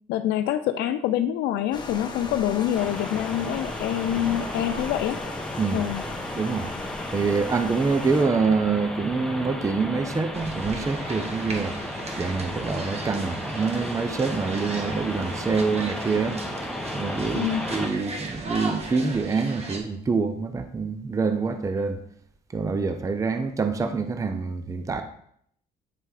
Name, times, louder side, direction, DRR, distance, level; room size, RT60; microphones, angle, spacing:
voice 1, 0.1-5.2 5.7-6.0 17.3-17.7, left 11 dB, 80° left, 8 dB, 0.4 m, -26 dB
sound 1, 1.7-8.2, left 3 dB, 25° left, 1.2 m, -37 dB
sound 2, 2.7-17.9, left 1 dB, 5° left, 1.0 m, -34 dB
voice 2, 6.3-6.7 7.1-11.8 12.2-16.4 16.9-22.0 22.5-25.0, right 4 dB, 20° right, 8 dB, 0.5 m, -26 dB
sound 3, 10.3-19.8, right 3 dB, 40° right, 1.4 m, -37 dB
9.2 x 3.3 x 4.8 m, 0.68 s
cardioid pair, 110°, 17 cm